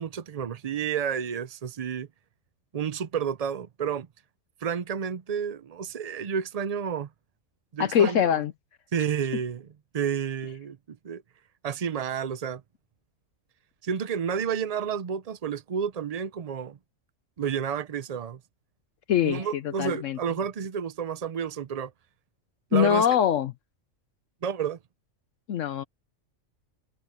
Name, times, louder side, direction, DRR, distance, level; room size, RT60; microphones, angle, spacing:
voice 1, 0.0-2.1 2.7-4.1 4.6-7.1 7.7-8.4 8.9-9.7 9.9-10.8 11.0-11.2 11.6-12.6 13.8-16.8 17.4-18.4 19.2-21.9 22.7-23.2 24.4-24.8, right 7 dB, 60° right, 0.4 m, -30 dB
voice 2, 7.8-8.5 19.1-20.2 22.7-23.5 25.5-25.8, left 9 dB, 70° left, 1.0 m, -23 dB
omnidirectional pair, 1.4 m